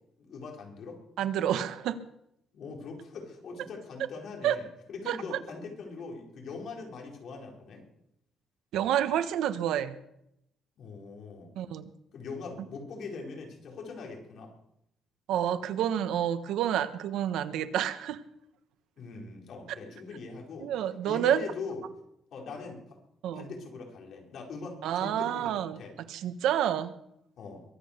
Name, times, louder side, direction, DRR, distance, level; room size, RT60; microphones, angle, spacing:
voice 1, 0.2-1.0 2.5-7.8 10.8-11.5 12.1-14.5 19.0-20.7 21.0-21.8 22.3-23.0 23.3-25.9 27.4-27.6, left 4 dB, 55° left, 0 dB, 4.5 m, -41 dB
voice 2, 1.2-2.0 4.4-4.6 5.1-5.4 8.7-9.9 11.6-11.9 15.3-18.2 20.6-21.4 23.2-23.5 24.8-25.8 26.1-26.9, right 10 dB, 85° right, 11 dB, 1.2 m, -29 dB
22.5 x 8.9 x 6.7 m, 0.79 s
cardioid pair, 165°, 0 cm